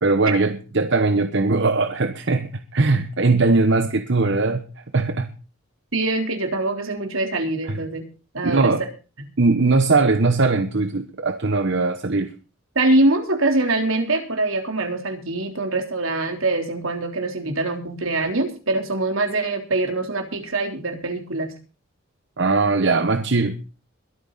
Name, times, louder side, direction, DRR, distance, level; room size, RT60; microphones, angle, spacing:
voice 1, 0.0-4.7 4.9-5.3 7.7-7.8 8.4-8.8 9.4-12.3 22.4-23.6, right 3 dB, 60° right, 1.0 m, -20 dB
voice 2, 5.9-8.1 8.3-8.7 9.2-9.3 12.8-21.5, right 2 dB, 80° right, 3.6 m, -23 dB
22.0 x 9.0 x 4.1 m
head